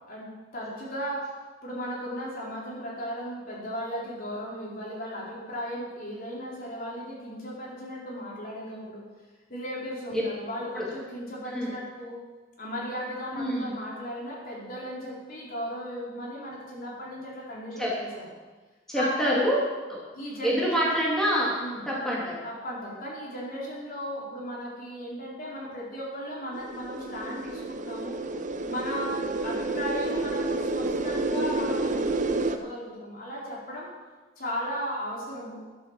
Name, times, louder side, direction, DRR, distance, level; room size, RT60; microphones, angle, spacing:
voice 1, 0.1-1.3 1.6-9.0 9.5-12.2 12.6-18.3 18.9-19.4 20.1-20.9 21.6-21.9 22.4-28.2 28.7-33.9 34.4-35.6, equal, 50° left, -5 dB, 4.5 m, -36 dB
voice 2, 13.4-13.7 17.8-17.9 18.9-20.0 20.4-21.6 21.9-22.4, equal, 5° left, -6 dB, 2.9 m, -26 dB
sound 1, 26.5-32.6, right 2 dB, 45° right, 0.8 m, -29 dB
12.0 x 9.0 x 7.6 m, 1.3 s
head